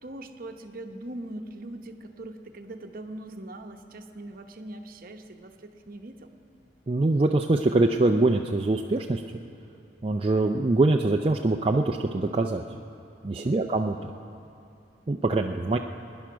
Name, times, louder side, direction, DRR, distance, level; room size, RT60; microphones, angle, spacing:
voice 1, 0.0-6.3 13.4-13.7, right 1 dB, 55° right, 5 dB, 0.9 m, -41 dB
voice 2, 6.9-9.2 10.0-12.6 13.2-13.9 15.1-15.8, right 2 dB, 30° right, 2 dB, 0.5 m, -23 dB
22.0 x 10.5 x 6.1 m, 2.6 s
head